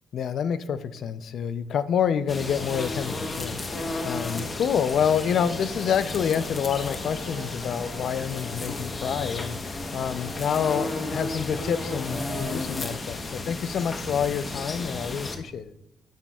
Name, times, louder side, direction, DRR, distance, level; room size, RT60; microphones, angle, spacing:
voice 1, 0.1-15.7, left 8 dB, 65° left, 14 dB, 0.5 m, -28 dB
sound 1, 2.3-15.4, left 2 dB, 35° left, 1.0 m, -33 dB
Brass instrument, 5.3-8.7 9.1-12.7, right 4 dB, 55° right, 3.2 m, -45 dB
10.0 x 8.9 x 2.4 m, 0.89 s
cardioid pair, 90°, 0 cm